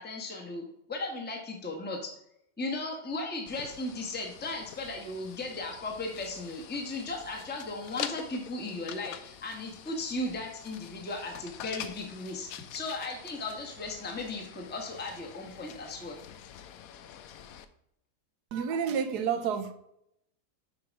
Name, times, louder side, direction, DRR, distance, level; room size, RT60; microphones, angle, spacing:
voice 1, 0.0-2.1 2.6-16.2, left 2 dB, 5° left, 1 dB, 1.1 m, -36 dB
sound 1, 3.5-17.6, left 9 dB, 65° left, 0.9 m, -45 dB
voice 2, 18.5-19.7, right 7 dB, 75° right, 11 dB, 1.3 m, -29 dB
6.8 x 5.0 x 5.2 m, 0.77 s
omnidirectional pair, 1.8 m